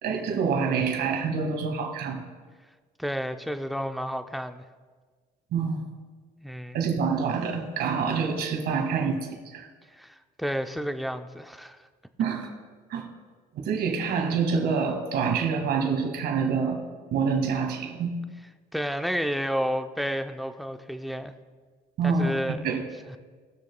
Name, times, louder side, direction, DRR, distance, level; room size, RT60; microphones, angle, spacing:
voice 1, 0.0-2.2 5.5-5.9 6.7-9.7 12.2-12.5 12.9-13.1 13.5-16.8 17.1-18.1 22.0-22.3 22.6-22.8, right 5 dB, 75° right, 4 dB, 1.7 m, -26 dB
voice 2, 3.0-4.6 6.4-6.8 9.9-11.8 18.7-21.3 22.0-23.2, equal, ahead, 8 dB, 0.5 m, -31 dB
19.5 x 6.7 x 2.2 m, 1.5 s
cardioid pair, 110°, 17 cm